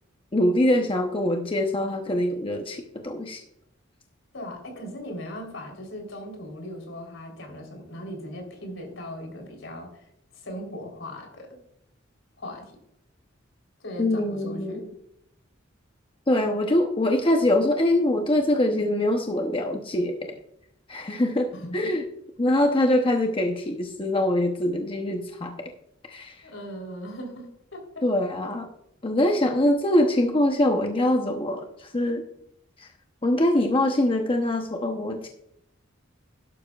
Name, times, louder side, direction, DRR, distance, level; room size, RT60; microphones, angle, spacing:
voice 1, 0.3-3.4 14.0-14.8 16.3-20.3 20.9-21.5 21.7-22.0 22.4-25.5 26.1-26.4 28.0-28.7 29.0-32.2 32.8-32.9 33.2-35.3, left 1 dB, 25° left, 3 dB, 0.8 m, -23 dB
voice 2, 4.3-10.1 10.3-11.6 12.4-12.7 13.8-14.9 21.5-21.9 26.4-28.1, equal, 70° left, 2 dB, 3.7 m, -38 dB
12.0 x 12.0 x 2.4 m, 0.77 s
head